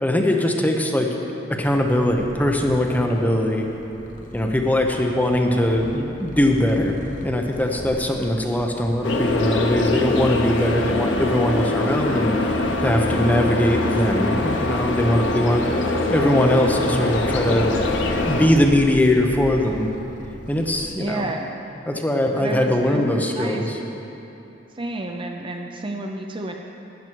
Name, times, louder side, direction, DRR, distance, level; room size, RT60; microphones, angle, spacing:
voice 1, 0.0-1.1 1.6-3.7 4.3-7.0 7.2-15.6 16.1-17.7 18.3-19.9 20.5-21.2 21.9-23.8, left 1 dB, 10° left, 1 dB, 0.8 m, -21 dB
Purr, 1.6-20.9, left 1 dB, 45° left, 1.0 m, -39 dB
sound 1, 9.0-18.5, left 2 dB, 80° left, 0.9 m, -23 dB
voice 2, 20.9-21.5 22.3-23.6 24.7-26.5, right 2 dB, 30° right, 3 dB, 0.5 m, -30 dB
12.0 x 9.1 x 4.6 m, 2.9 s
head